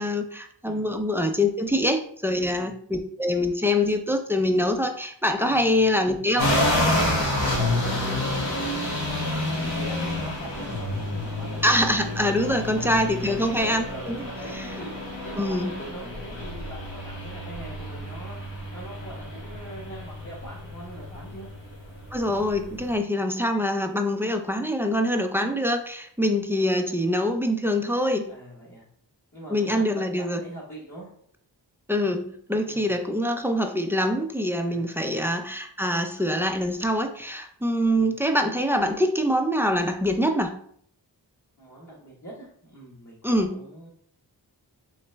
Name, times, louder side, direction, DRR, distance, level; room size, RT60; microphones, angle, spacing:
voice 1, 0.0-6.5 11.6-14.2 14.5-14.7 15.4-15.7 22.1-28.3 29.5-30.4 31.9-40.6 43.2-43.6, left 1 dB, 5° right, 5 dB, 0.4 m, -24 dB
voice 2, 2.3-2.7 5.4-5.8 7.3-11.9 12.4-12.9 13.3-21.5 28.3-28.9 29.3-31.1 32.7-33.0 34.6-35.3 37.8-38.1 41.6-43.2 43.5-43.9, right 1 dB, 40° left, -7 dB, 1.3 m, -42 dB
sound 1, 6.4-22.9, left 1 dB, 85° left, 1.3 m, -29 dB
4.0 x 3.2 x 3.3 m, 0.63 s
wide cardioid pair, 50°, 44 cm